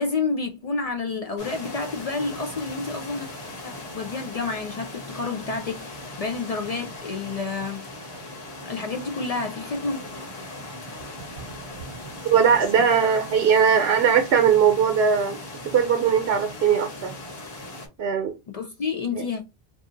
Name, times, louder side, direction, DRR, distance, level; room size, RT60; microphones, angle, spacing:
voice 1, 0.0-3.3 3.6-7.8 8.7-10.0 12.7-12.8 18.5-19.4, left 4 dB, 55° left, 0.4 m, -29 dB
sound 1, 1.4-17.9, left 1 dB, 90° left, 1.4 m, -39 dB
voice 2, 12.2-15.4 15.7-17.1 18.0-18.3, right 7 dB, 80° right, 0.8 m, -19 dB
2.7 x 2.4 x 3.7 m
omnidirectional pair, 1.0 m